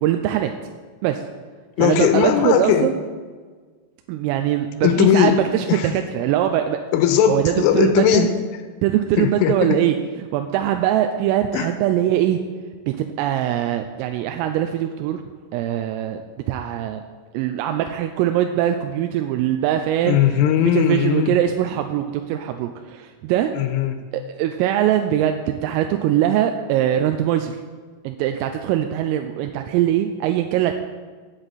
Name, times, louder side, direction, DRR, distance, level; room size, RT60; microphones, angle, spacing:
voice 1, 0.0-0.5 1.0-1.2 1.8-3.0 4.1-6.8 7.3-8.3 8.8-12.4 12.9-15.2 15.5-16.2 16.5-17.0 17.3-20.2 20.6-23.5 24.1-27.6 28.0-30.7, right 11 dB, 90° right, 6 dB, 3.3 m, -22 dB
voice 2, 1.8-2.9 4.8-5.4 5.7-5.9 6.9-8.3 9.2-9.8 11.5-11.7 20.0-21.4 23.5-24.0, left 10 dB, 85° left, 8 dB, 3.2 m, -18 dB
16.5 x 8.1 x 4.1 m, 1.5 s
omnidirectional pair, 5.8 m